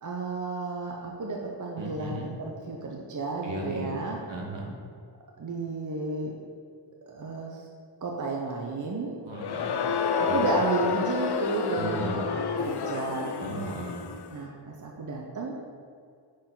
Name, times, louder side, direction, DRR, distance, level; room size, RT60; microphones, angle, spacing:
voice 1, 0.0-4.2 5.4-6.3 7.1-7.7 8.0-9.2 10.2-13.7 14.3-15.6, right 3 dB, 40° right, 0 dB, 0.7 m, -32 dB
voice 2, 1.8-2.3 3.4-4.0 4.3-4.7 9.2-9.8 10.3-10.5 11.8-12.2 13.4-14.0, right 1 dB, 65° right, -1 dB, 1.3 m, -35 dB
Crowd, 9.3-14.3, left 6 dB, 55° left, 0.5 m, -29 dB
6.4 x 3.8 x 3.9 m, 2.2 s
cardioid pair, 40°, 48 cm